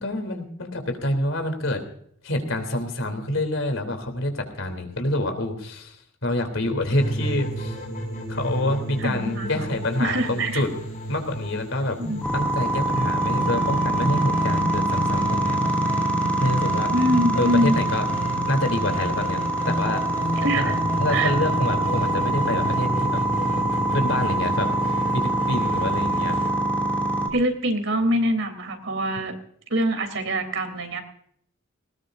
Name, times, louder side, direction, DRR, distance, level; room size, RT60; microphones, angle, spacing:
voice 1, 0.0-1.8 2.2-7.8 8.3-10.7 11.1-12.0 12.3-15.6 16.4-16.9 17.4-18.0 18.5-20.1 20.6-20.7 21.0-23.2 23.9-26.4, left 1 dB, 75° left, 6 dB, 3.4 m, -27 dB
sound 1, 7.0-26.5, equal, 40° left, 6.0 m, -31 dB
voice 2, 9.0-10.6 12.0-12.2 16.9-17.8 20.4-20.7 21.1-21.3 27.3-29.3 29.7-31.0, right 1 dB, 75° right, 6 dB, 3.3 m, -24 dB
sound 2, 12.2-27.3, right 1 dB, 5° left, 2.7 m, -25 dB
19.5 x 19.5 x 2.7 m, 0.66 s
head